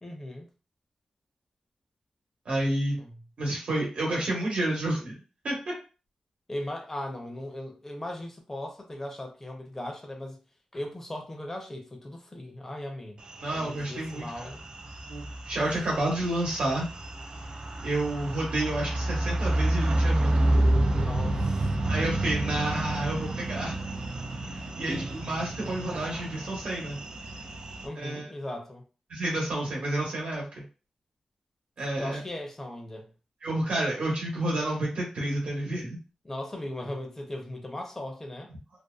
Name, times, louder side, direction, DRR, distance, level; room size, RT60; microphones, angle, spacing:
voice 1, 0.0-0.5 3.0-3.2 6.5-10.4 10.7-13.2 13.5-14.7 20.9-21.7 22.3-23.0 27.8-28.8 32.0-33.1 36.2-38.5, left 1 dB, 20° left, 0.5 m, -38 dB
voice 2, 2.4-3.0 3.4-5.2 5.4-5.7 13.4-14.5 15.1-16.9 17.8-20.5 21.9-23.8 24.8-27.0 27.9-28.3 29.1-30.6 31.8-32.2 33.4-36.0, right 1 dB, 75° right, 1.0 m, -30 dB
sound 1, 13.3-27.9, right 1 dB, 50° right, 0.4 m, -29 dB
2.6 x 2.2 x 2.3 m
wide cardioid pair, 115°, 2 cm